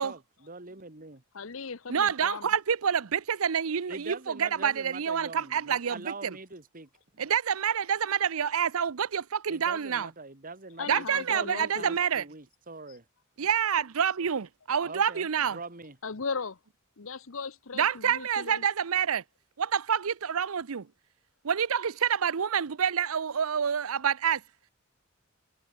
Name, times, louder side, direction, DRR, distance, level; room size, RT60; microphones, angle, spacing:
voice 1, 0.0-1.2 3.9-6.9 9.5-13.0 14.8-16.0, right 3 dB, 40° right, 3.1 m, -43 dB
voice 2, 1.3-2.5 10.8-12.0 16.0-16.6 17.0-18.6, left 5 dB, 70° left, 1.0 m, -37 dB
voice 3, 1.9-6.3 7.2-10.1 10.9-12.2 13.4-15.6 17.7-19.2 19.6-20.9 21.4-24.4, right 7 dB, 85° right, 0.7 m, -27 dB
head